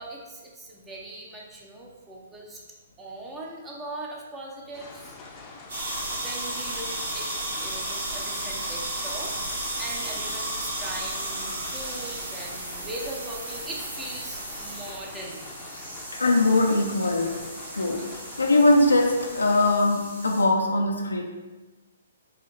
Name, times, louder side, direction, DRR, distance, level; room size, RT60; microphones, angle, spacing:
voice 1, 0.0-2.6 3.0-5.2 6.1-15.4, right 2 dB, 15° right, -2 dB, 0.7 m, -40 dB
sound 1, 4.7-19.7, left 3 dB, 25° left, 0.6 m, -44 dB
sound 2, 5.7-20.4, right 1 dB, 70° right, 1.4 m, -34 dB
voice 2, 16.1-17.4 17.7-21.2, left 2 dB, 85° left, 1 dB, 0.5 m, -21 dB
4.8 x 2.7 x 3.3 m, 1.2 s
figure-of-eight pair, 125°, 0 cm